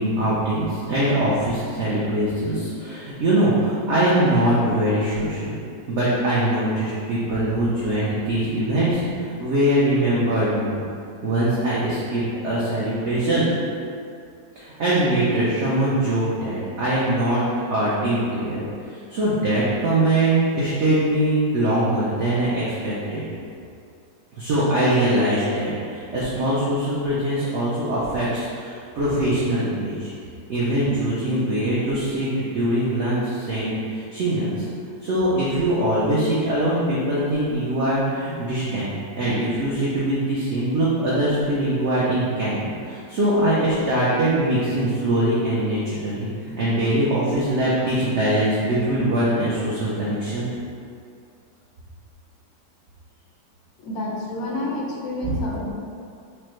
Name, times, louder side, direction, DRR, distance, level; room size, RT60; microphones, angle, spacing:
voice 1, 0.0-5.6 5.9-10.8 11.2-13.5 14.6-17.4 17.7-18.6 18.9-23.2 24.3-30.1 30.5-34.7 35.0-42.6 42.8-46.3 46.6-50.5, right 1 dB, 80° right, -8 dB, 0.6 m, -22 dB
voice 2, 53.8-55.7, left 1 dB, 85° left, -2 dB, 1.3 m, -29 dB
4.9 x 2.1 x 3.0 m, 2.4 s
omnidirectional pair, 1.9 m